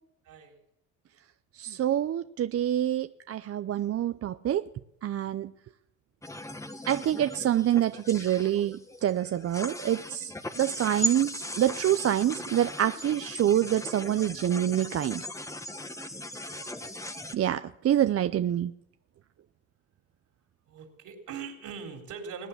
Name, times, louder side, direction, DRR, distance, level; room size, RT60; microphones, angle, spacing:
voice 1, 0.2-0.6 16.5-16.9 20.7-22.5, right 6 dB, 75° right, 2 dB, 3.8 m, -41 dB
voice 2, 1.6-4.7 5.0-5.5 6.9-15.2 17.3-18.7, right 11 dB, 50° right, 11 dB, 0.6 m, -26 dB
sound 1, 6.2-17.3, left 1 dB, 10° left, 1.3 m, -38 dB
21.0 x 9.4 x 7.2 m, 0.78 s
cardioid pair, 90°, 30 cm